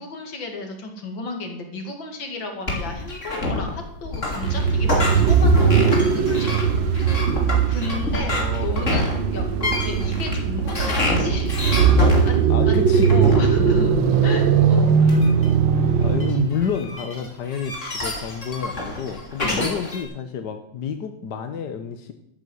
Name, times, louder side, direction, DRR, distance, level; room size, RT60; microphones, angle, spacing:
voice 1, 0.0-6.7 7.6-11.5 12.2-12.8 13.1-14.9 19.4-19.8, left 2 dB, 90° left, 3 dB, 3.1 m, -33 dB
sound 1, 2.7-20.0, left 2 dB, 40° left, 3.3 m, -28 dB
sound 2, 4.4-16.6, right 6 dB, 80° right, 1.9 m, -19 dB
voice 2, 7.9-8.8 12.5-13.1 16.0-22.1, left 7 dB, 65° left, 7 dB, 1.6 m, -30 dB
12.5 x 9.0 x 8.1 m, 0.76 s
omnidirectional pair, 2.0 m